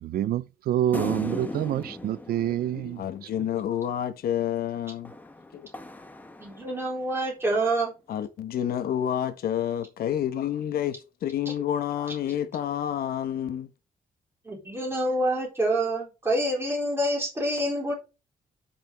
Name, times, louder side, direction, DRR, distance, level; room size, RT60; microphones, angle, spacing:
voice 1, 0.0-3.3, right 12 dB, 85° right, 0.5 m, -27 dB
sound 1, 0.9-3.6 5.0-7.1, left 1 dB, 10° left, 0.9 m, -38 dB
voice 2, 2.4-5.1 5.5-5.7 8.1-13.7, left 10 dB, 80° left, 1.1 m, -29 dB
voice 3, 6.4-7.9 11.5-11.6 14.4-17.9, right 1 dB, 15° right, 4.1 m, -27 dB
12.0 x 6.0 x 3.5 m
wide cardioid pair, 170°, 15 cm